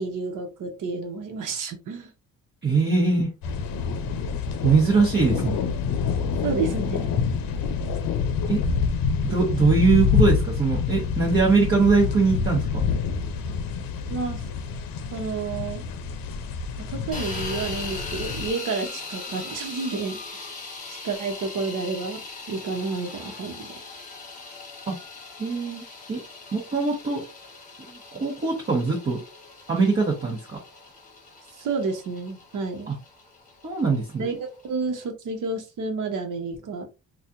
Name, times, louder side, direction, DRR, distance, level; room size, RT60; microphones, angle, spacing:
voice 1, 0.0-2.1 6.4-7.1 14.1-14.4 15.1-15.8 16.8-20.5 20.9-22.2 22.5-23.7 31.6-32.9 34.2-36.8, right 4 dB, 60° right, 5 dB, 1.0 m, -30 dB
voice 2, 2.6-3.3 4.6-5.6 8.5-8.6 9.2-12.9 24.9-25.0 25.4-26.2 26.5-27.2 27.9-29.2 29.7-30.6 32.9-33.0 33.6-34.2, right 4 dB, 30° right, -4 dB, 1.1 m, -22 dB
sound 1, 3.4-18.5, left 6 dB, 75° left, 0.6 m, -27 dB
sound 2, 17.1-35.1, left 3 dB, 25° left, 1.2 m, -40 dB
4.1 x 2.4 x 2.5 m, 0.28 s
cardioid pair, 145°, 35 cm